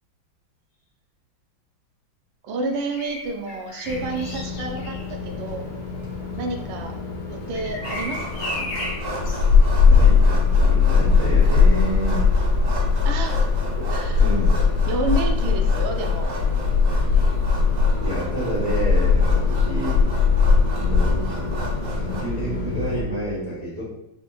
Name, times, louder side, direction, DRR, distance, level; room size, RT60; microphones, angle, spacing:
voice 1, 2.4-5.6 6.3-7.0 7.3-8.7 13.0-13.4 13.9-14.3 14.9-16.3, right 3 dB, 85° right, 3 dB, 1.5 m, -30 dB
Bird vocalization bird call bird song, 2.6-14.5 16.2-16.4, left 2 dB, 85° left, 1.6 m, -38 dB
sound 1, 3.8-23.0, left 5 dB, 70° left, 1.6 m, -20 dB
sound 2, 7.8-22.2, right 2 dB, 50° right, 1.1 m, -36 dB
voice 2, 9.9-12.3 13.8-13.9 14.2-14.7 17.1-17.2 18.0-20.1 20.6-23.8, right 1 dB, 30° right, -7 dB, 0.8 m, -30 dB
6.3 x 2.9 x 2.3 m, 0.82 s
omnidirectional pair, 2.2 m